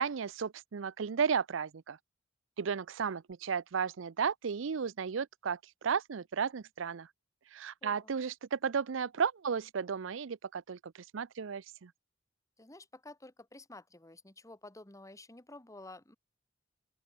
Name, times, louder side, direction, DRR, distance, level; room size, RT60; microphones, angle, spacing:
voice 1, 0.0-2.0 2.6-7.1 7.5-11.9, right 6 dB, 75° right, 0.5 m, -34 dB
voice 2, 7.8-8.1 12.6-16.2, left 2 dB, 15° left, 1.6 m, -51 dB
open air
head